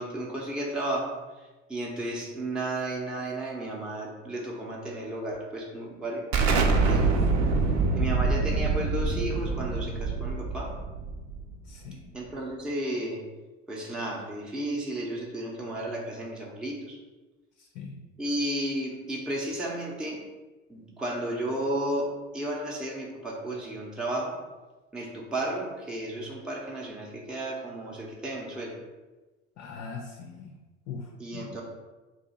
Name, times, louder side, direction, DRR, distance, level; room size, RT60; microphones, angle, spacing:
voice 1, 0.0-7.1 8.0-10.7 12.1-13.2 13.7-17.0 18.2-20.2 20.7-24.4 24.9-28.7 31.2-31.6, right 1 dB, ahead, -3 dB, 0.5 m, -33 dB
Explosion, 6.3-11.8, right 3 dB, 50° right, 0.6 m, -25 dB
voice 2, 7.5-7.9 11.7-12.1 17.7-18.0 29.6-30.5 30.9-31.1 31.3-31.5, left 5 dB, 45° left, 3 dB, 0.5 m, -40 dB
2.7 x 2.4 x 4.0 m, 1.2 s
hypercardioid pair, 75°, 38 cm